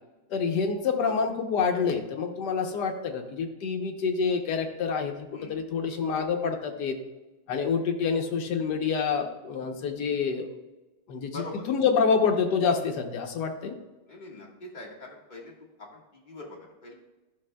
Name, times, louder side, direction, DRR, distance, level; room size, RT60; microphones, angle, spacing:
voice 1, 0.3-6.9 7.5-10.5 11.1-11.4 11.7-13.7, left 5 dB, 65° left, 4 dB, 1.3 m, -27 dB
voice 2, 11.3-11.6 12.8-13.0 14.1-16.9, left 2 dB, 25° left, -3 dB, 1.4 m, -43 dB
12.0 x 5.7 x 2.2 m, 1.1 s
omnidirectional pair, 2.0 m